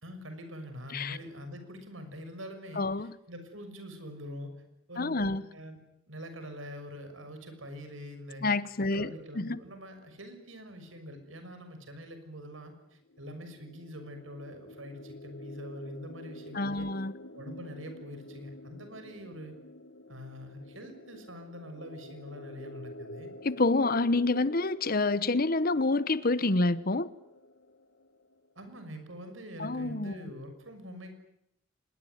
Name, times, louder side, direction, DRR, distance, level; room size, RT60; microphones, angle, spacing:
voice 1, 0.0-4.5 4.9-5.8 6.1-8.4 8.9-16.9 17.3-19.6 20.1-23.3 28.5-31.2, equal, 85° right, 6.5 m, -44 dB
voice 2, 2.8-3.2 5.0-5.4 8.4-9.6 16.5-17.1 23.4-27.1 29.6-30.1, left 2 dB, 45° left, 1.0 m, -28 dB
sound 1, 13.0-28.7, left 1 dB, 75° left, 1.8 m, -49 dB
26.0 x 21.0 x 9.5 m
head